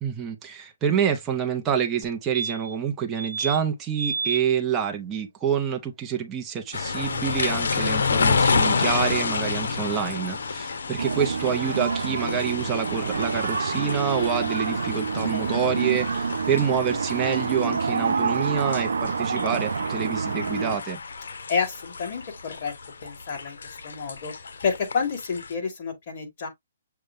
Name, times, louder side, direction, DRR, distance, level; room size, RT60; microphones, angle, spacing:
voice 1, 0.0-21.0, right 7 dB, 15° right, 0.6 m, -27 dB
sound 1, 2.0-2.1 2.3-2.8 3.2-3.6 4.0-4.4 6.8-6.9 7.1-7.2, right 4 dB, 40° right, 1.1 m, -30 dB
sound 2, 6.7-25.5, left 4 dB, 80° left, 0.8 m, -30 dB
sound 3, 11.0-20.8, right 5 dB, 85° right, 0.3 m, -28 dB
voice 2, 21.5-22.7 23.0-23.6 23.8-24.3 24.6-26.5, left 5 dB, 35° left, 2.1 m, -29 dB
6.6 x 2.2 x 3.5 m
hypercardioid pair, 165°, 0 cm